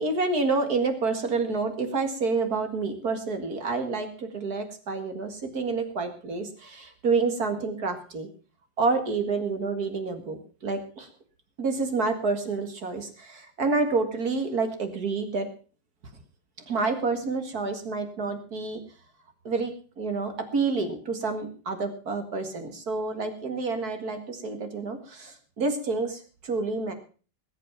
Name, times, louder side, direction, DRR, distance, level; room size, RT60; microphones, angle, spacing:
voice 1, 0.0-8.3 8.8-11.1 11.6-15.5 16.7-18.8 19.4-26.9, right 4 dB, 50° right, 7 dB, 2.4 m, -28 dB
19.5 x 8.3 x 5.7 m, 0.38 s
omnidirectional pair, 2.1 m